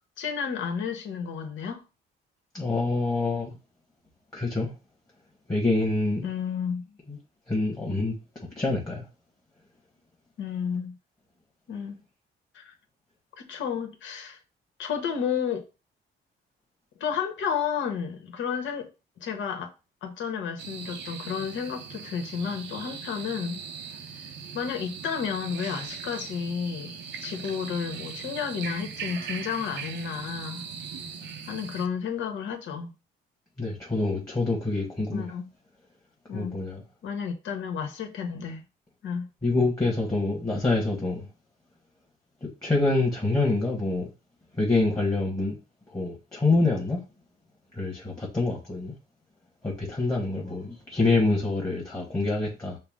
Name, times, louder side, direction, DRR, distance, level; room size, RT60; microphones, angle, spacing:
voice 1, 0.2-1.8 6.2-6.9 10.4-10.9 11.7-12.0 12.5-12.7 13.4-14.4 14.8-15.6 17.0-18.9 19.2-19.7 20.0-23.6 24.0-30.6 31.5-32.9 35.1-35.5 36.3-36.6 37.0-38.6 39.0-39.3, left 7 dB, 75° left, 1.1 m, -32 dB
voice 2, 2.5-3.5 4.3-4.7 5.5-6.2 7.5-8.1 8.6-9.0 33.6-35.2 36.3-36.8 39.4-41.3 42.4-44.1 44.6-45.6 45.9-47.0 47.8-48.9 49.6-52.8, left 2 dB, 20° left, 1.4 m, -26 dB
sound 1, 20.6-31.9, right 6 dB, 65° right, 0.7 m, -39 dB
5.7 x 2.0 x 3.6 m
cardioid pair, 90°, 20 cm